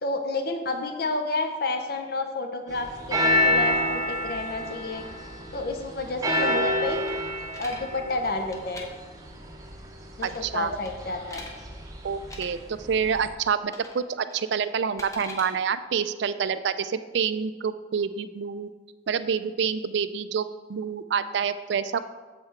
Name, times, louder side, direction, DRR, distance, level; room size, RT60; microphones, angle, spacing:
voice 1, 0.0-5.0 5.5-7.0 7.6-8.9 10.2-11.4, left 2 dB, 50° left, 5 dB, 0.6 m, -30 dB
sound 1, 2.7-13.3, left 1 dB, 20° right, 0.7 m, -29 dB
sound 2, 7.1-7.8 8.4-8.8 10.2-10.5 10.8-11.5 12.2-12.5 13.7-14.0 14.3-15.5, left 1 dB, 15° left, 0.8 m, -42 dB
voice 2, 10.2-10.8 12.0-18.7 19.1-22.0, right 6 dB, 65° right, 13 dB, 0.4 m, -27 dB
7.5 x 5.7 x 4.5 m, 1.3 s
head